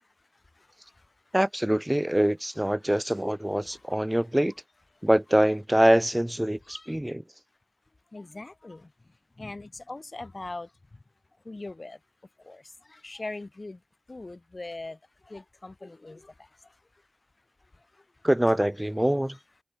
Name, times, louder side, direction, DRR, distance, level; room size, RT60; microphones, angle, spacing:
voice 1, 1.3-4.5 5.0-7.2 18.2-19.4, right 1 dB, 10° right, 0.3 m, -24 dB
voice 2, 3.4-3.8 4.1-4.2 6.6-7.0 8.1-8.9 9.4-10.7 11.5-12.0 12.4-12.6 12.9-13.8 14.1-15.0 15.3-16.5, left 2 dB, 40° left, 2.1 m, -41 dB
wide cardioid pair, 70°, 0 cm